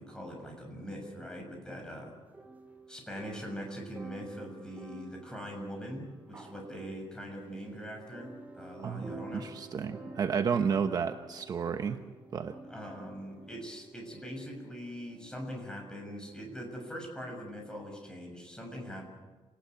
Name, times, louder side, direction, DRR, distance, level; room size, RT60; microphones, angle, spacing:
voice 1, 0.0-2.1 2.9-9.5 12.7-19.1, equal, 10° left, 1 dB, 6.9 m, -42 dB
sound 1, 2.3-15.6, right 2 dB, 15° right, 3.2 m, -50 dB
voice 2, 8.8-9.1 9.4-12.0 12.3-12.5, right 6 dB, 45° right, 7 dB, 1.0 m, -31 dB
28.5 x 19.0 x 8.4 m, 1.3 s
wide cardioid pair, 170°, 10 cm